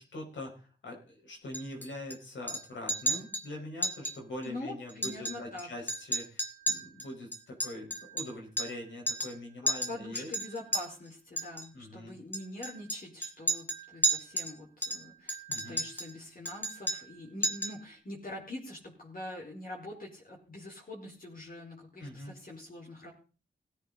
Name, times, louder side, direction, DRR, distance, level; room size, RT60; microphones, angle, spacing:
voice 1, 0.0-10.3 11.7-12.2 15.5-15.8 22.0-22.4, left 1 dB, 85° left, 0 dB, 5.1 m, -43 dB
Chink clink, 1.5-2.2 2.5-2.6 2.9-3.5 3.8-4.2 4.4-4.5 4.9-5.6 5.9-8.8 9.1-9.4 9.7-10.8 11.4-11.7 12.3-14.5 14.8-16.1 16.5-17.2 17.4-17.8, right 1 dB, 10° left, 2.4 m, -33 dB
voice 2, 4.4-5.7 9.6-23.1, left 1 dB, 50° left, -3 dB, 4.6 m, -44 dB
17.0 x 9.6 x 4.0 m, 0.36 s
cardioid pair, 55°, 19 cm